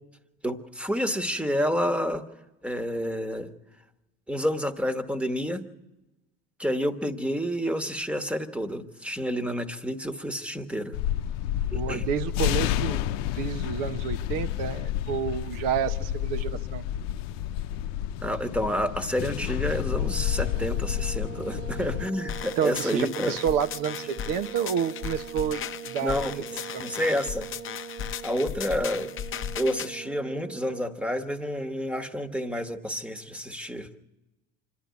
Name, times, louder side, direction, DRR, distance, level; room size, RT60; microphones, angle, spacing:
voice 1, 0.4-2.2 2.6-3.5 4.3-5.6 6.6-11.0 11.7-12.1 18.2-23.4 26.0-27.5 28.2-29.1 29.5-34.0, equal, 5° right, 8 dB, 1.3 m, -29 dB
sound 1, 10.9-22.1, left 12 dB, 85° left, 0.7 m, -30 dB
voice 2, 11.7-13.0 13.3-16.8 22.6-25.6 25.9-26.4 26.7-26.9, right 8 dB, 70° right, 12 dB, 1.1 m, -29 dB
sound 2, 19.9-31.0, right 7 dB, 50° right, 1.0 m, -42 dB
sound 3, 22.3-29.9, left 10 dB, 35° left, 0.6 m, -36 dB
25.5 x 11.5 x 9.4 m, 1.0 s
supercardioid pair, 110°, 35 cm